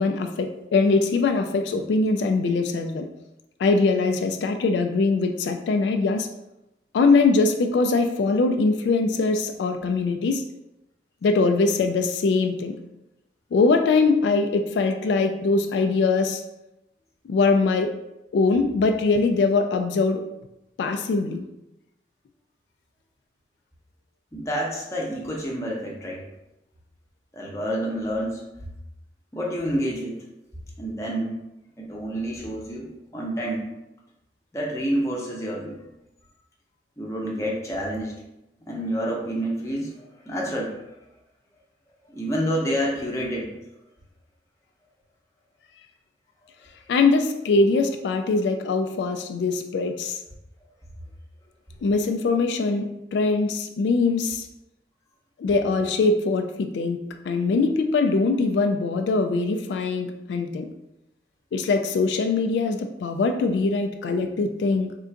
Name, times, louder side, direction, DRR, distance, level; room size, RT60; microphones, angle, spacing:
voice 1, 0.0-3.1 3.6-6.3 6.9-10.4 11.2-12.7 13.5-16.4 17.3-17.9 18.3-20.2 20.8-21.4 46.9-50.2 51.8-54.5 55.4-60.7 61.5-65.0, left 3 dB, 80° left, 6 dB, 0.3 m, -22 dB
voice 2, 24.3-26.2 27.3-28.5 29.3-30.2 30.8-31.4 31.8-33.7 34.5-35.8 37.0-38.1 38.7-40.8 42.1-43.5, equal, 15° left, -3 dB, 0.7 m, -28 dB
3.6 x 2.5 x 4.4 m, 0.91 s
head